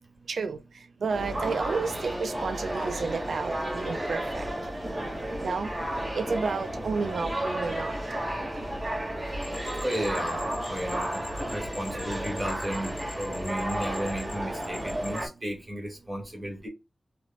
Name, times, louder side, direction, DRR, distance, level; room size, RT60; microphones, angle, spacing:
voice 1, 0.3-4.4 5.4-5.7 6.1-7.9, right 4 dB, 90° right, 0.3 m, -31 dB
sound 1, 1.1-15.3, right 1 dB, 30° right, 1.4 m, -32 dB
sound 2, 9.4-15.3, left 2 dB, 45° left, 1.1 m, -46 dB
voice 2, 9.8-11.2 11.5-16.7, equal, 15° right, 1.6 m, -34 dB
3.0 x 2.5 x 2.4 m
wide cardioid pair, 80°, 0 cm